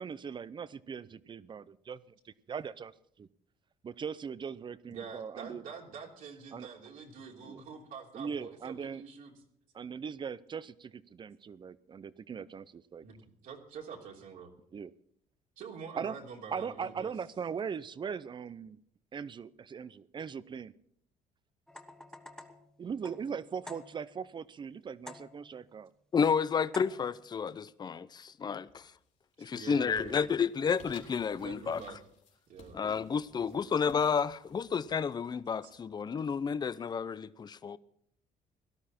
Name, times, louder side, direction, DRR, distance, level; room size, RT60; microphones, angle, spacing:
voice 1, 0.0-3.3 3.8-5.6 6.5-6.7 7.4-7.6 8.1-9.0 9.7-13.0 14.7-14.9 16.0-16.2 16.5-18.8 19.1-20.7 22.8-25.9, right 6 dB, 35° right, 0.6 m, -40 dB
voice 2, 4.9-9.3 13.0-13.2 13.4-14.5 15.6-17.1 29.5-30.2 31.3-32.0 32.5-32.8 33.3-33.7, right 5 dB, 70° right, 3.2 m, -46 dB
sound 1, 21.7-24.3 25.1-25.7 26.7-27.3, left 1 dB, 5° left, 1.2 m, -50 dB
voice 3, 26.1-28.9 29.4-31.8 32.7-37.8, left 6 dB, 30° left, 0.6 m, -31 dB
sound 2, 28.6-29.1 29.5-36.1, left 4 dB, 55° left, 3.3 m, -58 dB
17.5 x 12.5 x 4.4 m
cardioid pair, 100°, 14 cm